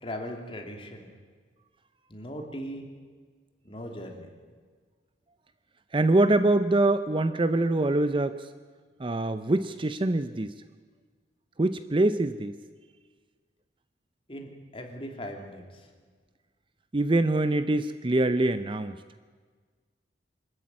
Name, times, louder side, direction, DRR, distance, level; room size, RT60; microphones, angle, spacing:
voice 1, 0.0-1.1 2.1-2.9 3.6-4.3 14.3-15.9, equal, 30° left, 2 dB, 2.9 m, -39 dB
voice 2, 5.9-8.5 9.0-10.5 11.6-12.6 16.9-19.0, right 2 dB, 25° right, 11 dB, 0.6 m, -24 dB
25.0 x 13.5 x 9.6 m, 1.5 s
head